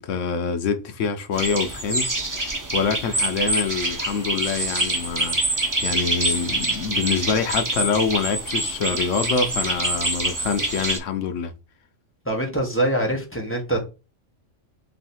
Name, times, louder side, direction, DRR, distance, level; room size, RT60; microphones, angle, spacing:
voice 1, 0.0-11.5, left 5 dB, 75° left, 1.0 m, -26 dB
sound 1, 1.3-11.0, right 2 dB, 20° right, 0.6 m, -25 dB
voice 2, 12.2-13.9, right 1 dB, 10° left, 0.9 m, -24 dB
3.3 x 2.7 x 4.1 m
omnidirectional pair, 1.3 m